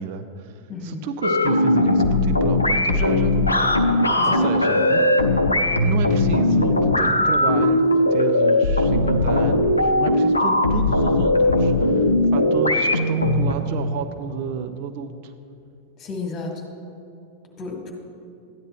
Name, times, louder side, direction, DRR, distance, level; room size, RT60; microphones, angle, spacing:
voice 1, 0.0-3.8 4.3-5.2 5.6-15.3, right 7 dB, 45° right, 9 dB, 0.5 m, -31 dB
voice 2, 0.7-1.1 4.2-4.5 16.0-16.6 17.6-17.9, left 4 dB, 30° left, 1 dB, 1.8 m, -32 dB
sound 1, 1.2-13.5, left 1 dB, 85° left, 0.5 m, -19 dB
13.5 x 9.8 x 3.1 m, 2.7 s
figure-of-eight pair, 90°, 0 cm